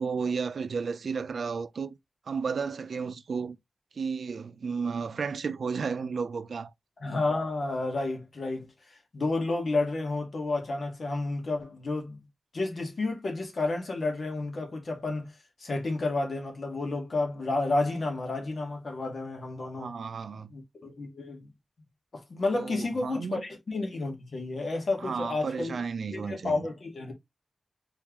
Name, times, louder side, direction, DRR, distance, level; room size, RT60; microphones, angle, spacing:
voice 1, 0.0-2.0 2.3-3.6 4.0-6.7 19.8-20.5 22.5-23.4 25.0-26.6, right 5 dB, 80° right, 0.5 m, -33 dB
voice 2, 7.0-12.2 12.5-15.3 15.6-20.0 20.5-21.5 22.1-25.8 26.1-27.1, left 2 dB, 55° left, 1.6 m, -31 dB
4.4 x 3.8 x 3.0 m
wide cardioid pair, 140°, 0 cm